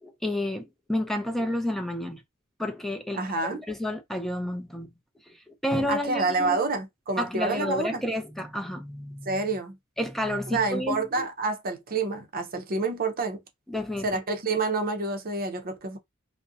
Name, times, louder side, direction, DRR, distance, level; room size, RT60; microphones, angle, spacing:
voice 1, 0.0-2.2 2.6-3.2 3.5-4.9 5.5-6.6 7.2-9.3 10.0-11.2 13.7-14.1, left 1 dB, ahead, 0.4 m, -30 dB
voice 2, 3.1-3.6 5.9-8.0 9.3-9.8 10.5-13.4 14.0-16.0, right 3 dB, 45° right, 0.6 m, -28 dB
2.5 x 2.0 x 2.6 m
head